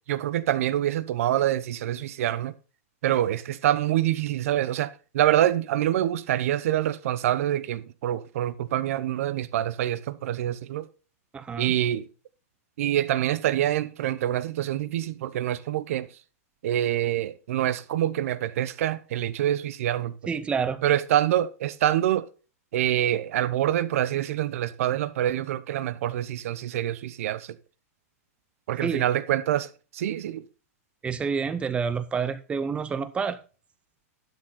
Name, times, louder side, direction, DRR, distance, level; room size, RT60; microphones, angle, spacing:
voice 1, 0.1-2.5 3.0-10.8 11.6-12.0 12.8-16.1 16.6-20.1 20.8-22.3 22.7-27.5 28.7-30.4, right 12 dB, 65° right, 0.8 m, -26 dB
voice 2, 11.3-11.8 20.3-20.8 28.8-29.0 31.0-33.4, right 6 dB, 15° right, 0.7 m, -28 dB
11.5 x 6.5 x 4.1 m
hypercardioid pair, 145°, 8 cm